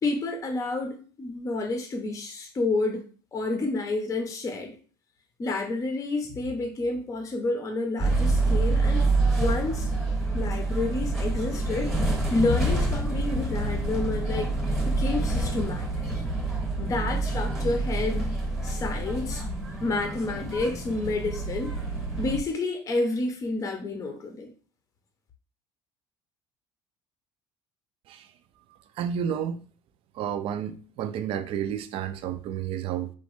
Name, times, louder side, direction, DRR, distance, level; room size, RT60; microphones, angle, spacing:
voice 1, 0.0-4.8 5.4-9.0 9.4-9.9 10.3-16.0 16.8-18.3 18.6-19.4 19.8-21.7 22.2-24.5, left 2 dB, 30° left, 0.6 m, -29 dB
sound 1, 8.0-22.4, right 2 dB, ahead, 0.9 m, -27 dB
voice 2, 29.0-29.7 30.1-33.1, right 9 dB, 55° right, 0.3 m, -31 dB
3.1 x 2.1 x 3.0 m
supercardioid pair, 95°, 11 cm